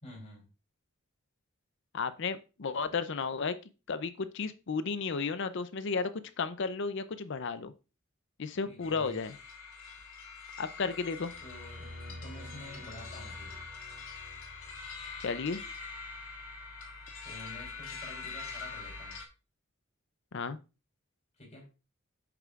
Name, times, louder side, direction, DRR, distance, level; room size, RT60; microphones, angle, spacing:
voice 1, 0.0-0.5 8.6-9.2 11.4-13.6 17.2-19.2 21.4-21.7, left 1 dB, 35° left, -4 dB, 3.4 m, -49 dB
voice 2, 1.9-3.6 3.9-7.7 8.4-9.3 10.6-11.3 15.2-15.6 20.3-20.6, left 4 dB, 60° left, 12 dB, 0.6 m, -33 dB
sound 1, 8.8-19.3, left 4 dB, 80° left, 1.7 m, -44 dB
sound 2, 11.2-15.5, left 1 dB, 55° right, 2.3 m, -49 dB
8.4 x 6.7 x 2.5 m, 0.31 s
head